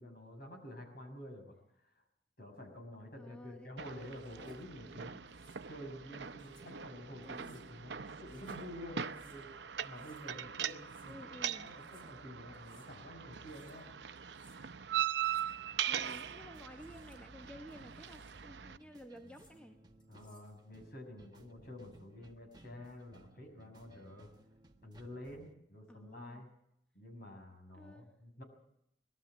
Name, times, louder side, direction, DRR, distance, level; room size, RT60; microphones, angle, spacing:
voice 1, 0.0-1.6 2.4-5.2 5.7-9.5 9.8-13.9 20.1-24.3 24.8-26.5 26.9-28.4, left 1 dB, 60° left, 3 dB, 6.2 m, -49 dB
voice 2, 3.2-3.7 4.4-4.5 7.2-7.6 11.0-11.7 15.9-19.8 25.9-26.4 27.7-28.1, equal, 5° left, 5 dB, 1.2 m, -53 dB
sound 1, 3.8-18.8, right 9 dB, 85° right, 0.7 m, -41 dB
sound 2, 4.1-4.6 5.3-5.6 6.4-6.7 7.2-7.7 8.1-8.7 9.0-9.4 9.8-10.3 10.7-11.2 11.7-12.1 12.5-12.9 13.3-13.8 14.1-14.6 15.0-15.5 15.9-16.3 16.7-17.2 17.7-18.4 19.2-19.6 20.0-20.5, left 3 dB, 30° left, 5.4 m, -68 dB
sound 3, 15.9-25.5, right 1 dB, 25° right, 1.6 m, -61 dB
21.5 x 13.0 x 9.8 m, 0.75 s
head